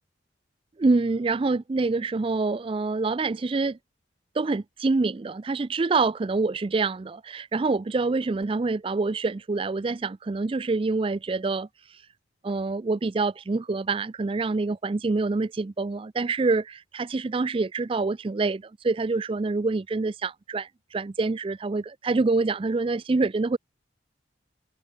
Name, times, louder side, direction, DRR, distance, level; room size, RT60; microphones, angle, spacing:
voice 1, 0.8-3.8 4.4-11.7 12.4-23.6, right 3 dB, 30° right, 0.4 m, -26 dB
head